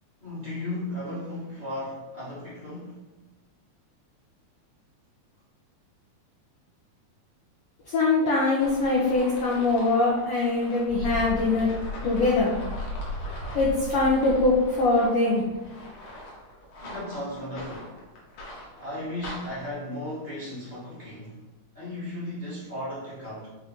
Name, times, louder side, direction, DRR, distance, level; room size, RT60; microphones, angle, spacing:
voice 1, 0.2-3.0 16.8-18.0 18.8-21.5 21.7-23.5, left 1 dB, 40° left, -10 dB, 0.6 m, -35 dB
voice 2, 7.9-11.7 12.0-12.6 13.5-15.4, left 3 dB, 85° left, -4 dB, 1.2 m, -22 dB
sound 1, 8.6-19.7, left 1 dB, 60° left, 1.7 m, -38 dB
5.7 x 2.5 x 3.6 m, 1.1 s
omnidirectional pair, 3.5 m